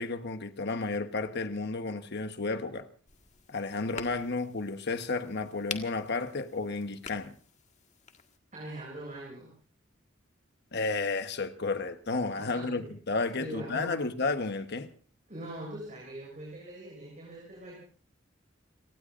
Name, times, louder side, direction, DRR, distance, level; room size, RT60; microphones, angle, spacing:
voice 1, 0.0-2.9 3.5-7.3 10.7-14.9, left 3 dB, 55° left, 1.2 m, -32 dB
sound 1, 3.1-8.4, left 6 dB, 35° left, 1.7 m, -46 dB
voice 2, 8.5-9.5 12.5-12.9 13.4-14.0 15.3-17.8, right 1 dB, 40° right, 7.0 m, -42 dB
30.0 x 18.5 x 2.6 m
head